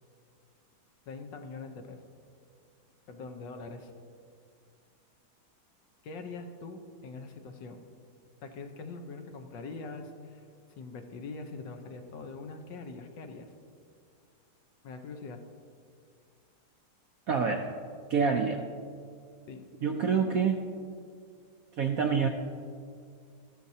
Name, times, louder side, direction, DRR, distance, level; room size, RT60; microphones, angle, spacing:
voice 1, 1.1-2.0 3.1-3.9 6.0-7.8 8.4-13.5 14.8-15.4 19.5-19.7, left 3 dB, 75° left, 5 dB, 1.5 m, -43 dB
voice 2, 17.3-17.7 18.1-18.6 19.8-20.6 21.8-22.3, right 6 dB, 70° right, 4 dB, 0.8 m, -26 dB
13.0 x 13.0 x 2.7 m, 2.2 s
omnidirectional pair, 2.1 m